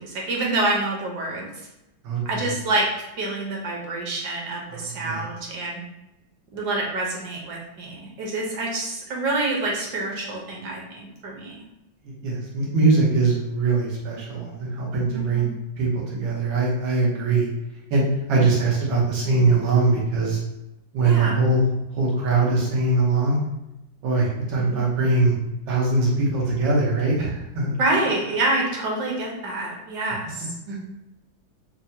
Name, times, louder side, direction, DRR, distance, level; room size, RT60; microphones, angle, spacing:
voice 1, 0.0-1.5 2.3-2.9 3.2-5.8 6.5-11.5 15.1-15.5 21.0-21.4 24.5-24.8 27.8-30.5, right 2 dB, 65° right, -2 dB, 1.2 m, -27 dB
voice 2, 2.0-2.5 4.7-5.3 12.0-15.5 15.8-17.5 17.9-20.4 20.9-23.4 24.0-25.4 25.7-27.7 30.7-30.8, right 3 dB, 90° right, -5 dB, 1.9 m, -22 dB
6.0 x 2.2 x 2.7 m, 0.91 s
omnidirectional pair, 2.1 m